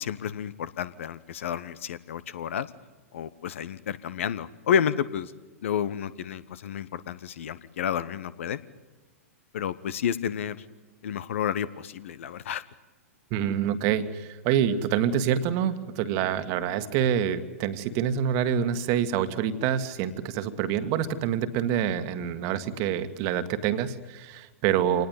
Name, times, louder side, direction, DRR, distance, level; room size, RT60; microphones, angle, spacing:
voice 1, 0.0-2.7 3.1-5.3 5.6-8.6 9.5-10.6 11.0-12.6, left 8 dB, 60° left, 16 dB, 1.1 m, -30 dB
voice 2, 13.3-25.1, right 9 dB, 40° right, 10 dB, 1.7 m, -26 dB
26.5 x 19.0 x 9.5 m, 1.2 s
figure-of-eight pair, 100°, 8 cm